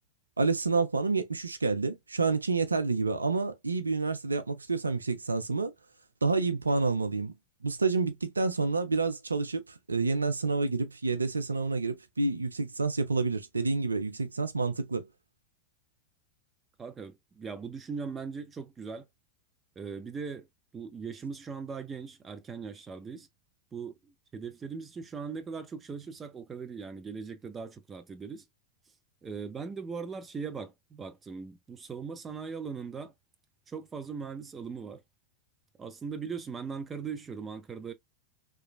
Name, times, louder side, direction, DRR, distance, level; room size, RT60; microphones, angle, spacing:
voice 1, 0.4-5.7 6.2-7.3 7.6-15.1, right 3 dB, 80° right, 0.4 m, -29 dB
voice 2, 16.8-19.1 19.8-20.5 20.7-23.3 23.7-28.4 29.2-33.1 33.7-35.0 35.8-37.9, right 5 dB, 20° right, 0.5 m, -39 dB
3.0 x 2.3 x 2.2 m
figure-of-eight pair, 90°, 0 cm